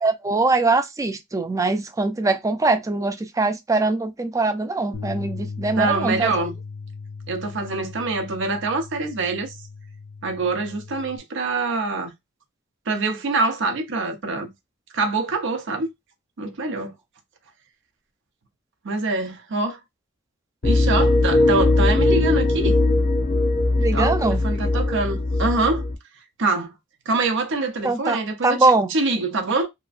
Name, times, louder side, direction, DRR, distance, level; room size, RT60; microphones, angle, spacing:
voice 1, 0.0-6.3 23.8-24.4 27.8-28.2 28.4-28.9, right 3 dB, 15° right, 0.3 m, -22 dB
Bass guitar, 4.9-11.2, left 4 dB, 90° left, 0.5 m, -37 dB
voice 2, 5.7-6.5 7.3-9.5 10.2-12.1 12.9-14.5 14.9-15.9 16.4-16.9 18.8-19.8 20.6-22.8 23.9-25.8 26.4-26.7 27.1-29.7, right 3 dB, 60° right, 0.7 m, -25 dB
sound 1, 20.6-25.9, left 2 dB, 40° left, 0.7 m, -20 dB
2.9 x 2.4 x 2.4 m
head